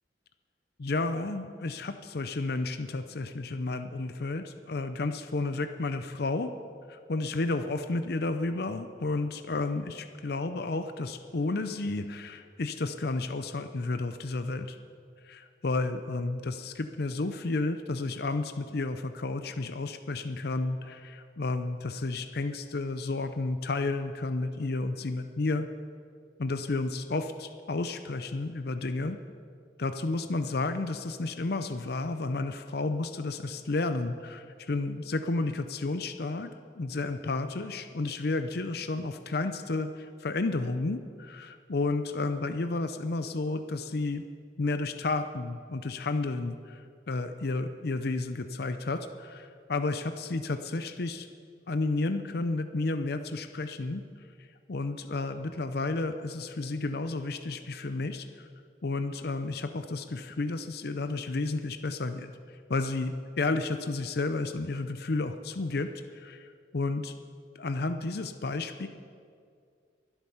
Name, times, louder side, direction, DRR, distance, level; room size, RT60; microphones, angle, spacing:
voice 1, 0.8-6.5 6.9-14.8 15.2-25.7 26.4-29.2 29.8-44.2 44.6-51.3 51.7-54.0 54.7-58.5 58.8-67.1 67.5-68.9, left 3 dB, 60° left, 9 dB, 0.6 m, -32 dB
23.5 x 8.1 x 5.7 m, 2.2 s
head